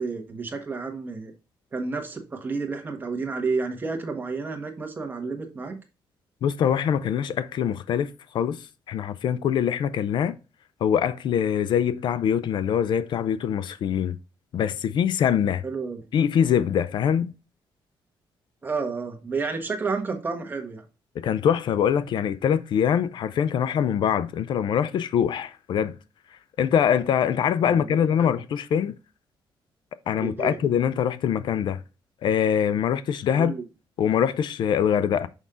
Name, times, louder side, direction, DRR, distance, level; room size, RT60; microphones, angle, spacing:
voice 1, 0.0-1.3 1.7-5.8 15.6-16.0 18.6-20.8 27.6-28.3 30.2-30.6 33.4-33.6, right 4 dB, 20° right, 1.4 m, -30 dB
voice 2, 6.4-8.1 8.3-8.6 8.9-10.3 10.8-14.2 14.5-15.6 16.1-17.3 21.2-26.0 26.6-28.9 30.1-31.8 32.2-33.5 34.0-35.3, left 8 dB, 65° left, 0.5 m, -23 dB
6.2 x 5.3 x 3.7 m
cardioid pair, 150°, 9 cm